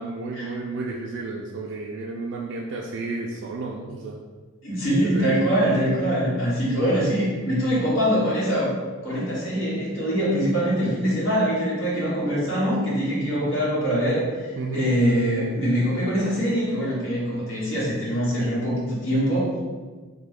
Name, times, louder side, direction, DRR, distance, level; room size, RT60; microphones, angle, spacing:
voice 1, 0.0-4.2 5.0-5.2 6.7-6.8 14.6-14.9, right 3 dB, 60° right, -2 dB, 0.3 m, -32 dB
voice 2, 4.6-8.7 9.0-19.6, equal, 75° left, -6 dB, 1.2 m, -23 dB
3.3 x 2.1 x 3.5 m, 1.4 s
head